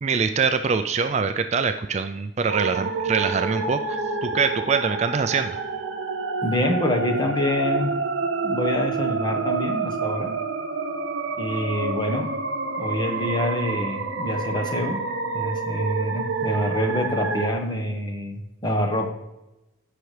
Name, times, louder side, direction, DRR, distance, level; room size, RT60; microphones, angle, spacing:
voice 1, 0.0-5.6, right 5 dB, 35° right, 8 dB, 0.3 m, -24 dB
sound 1, 2.5-17.5, right 4 dB, 70° right, 0.8 m, -28 dB
voice 2, 6.4-7.9 8.4-10.4 11.4-12.3 12.7-15.0 15.3-19.1, left 1 dB, 20° left, 2 dB, 1.1 m, -26 dB
15.5 x 5.8 x 3.3 m, 0.97 s
head